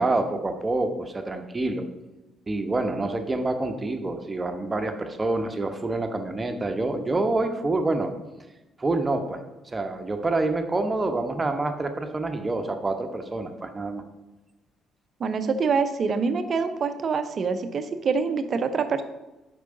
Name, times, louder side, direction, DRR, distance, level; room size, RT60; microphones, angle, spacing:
voice 1, 0.0-1.8 2.5-8.1 8.8-14.0, right 2 dB, 25° right, 6 dB, 1.0 m, -27 dB
voice 2, 15.2-19.0, right 5 dB, 50° right, 10 dB, 0.7 m, -25 dB
8.2 x 5.5 x 3.9 m, 1.1 s
figure-of-eight pair, 45°, 0 cm